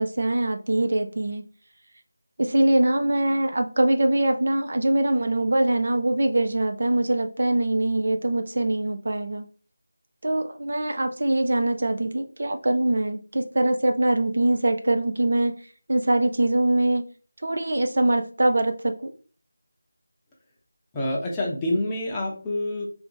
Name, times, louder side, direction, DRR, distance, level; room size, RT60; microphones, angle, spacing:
voice 1, 0.0-1.4 2.4-9.5 10.2-15.5 15.9-17.0 17.4-19.1, right 1 dB, 55° right, 6 dB, 0.6 m, -23 dB
voice 2, 20.9-22.9, left 1 dB, 10° left, -3 dB, 0.7 m, -27 dB
3.5 x 2.7 x 4.4 m, 0.40 s
figure-of-eight pair, 170°, 0 cm